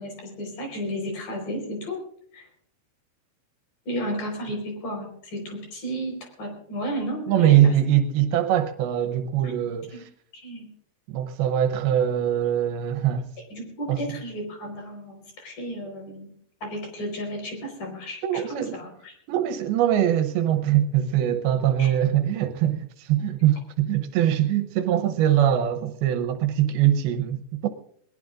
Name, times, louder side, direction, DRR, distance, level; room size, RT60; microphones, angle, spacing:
voice 1, 0.0-2.0 2.3-2.5 3.9-7.7 9.4-9.5 10.3-10.7 13.5-16.3 16.6-19.1 21.8-21.9, equal, 55° left, 5.9 m, -33 dB
voice 2, 7.3-10.1 11.1-13.3 13.9-14.0 18.2-18.7 19.3-27.7, right 11 dB, 80° right, 2.7 m, -22 dB
21.0 x 20.0 x 2.5 m
omnidirectional pair, 4.6 m